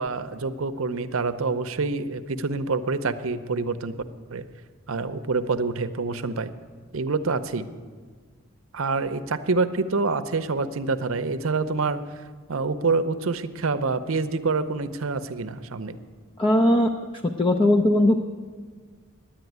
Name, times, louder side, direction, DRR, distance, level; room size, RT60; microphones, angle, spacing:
voice 1, 0.0-3.9 4.3-4.5 4.9-6.5 6.9-7.7 8.7-12.0 12.5-16.0, right 4 dB, 70° right, 11 dB, 0.7 m, -26 dB
voice 2, 16.4-16.9 17.4-18.2, left 1 dB, 25° left, 3 dB, 0.5 m, -19 dB
10.0 x 9.0 x 9.4 m, 1.5 s
head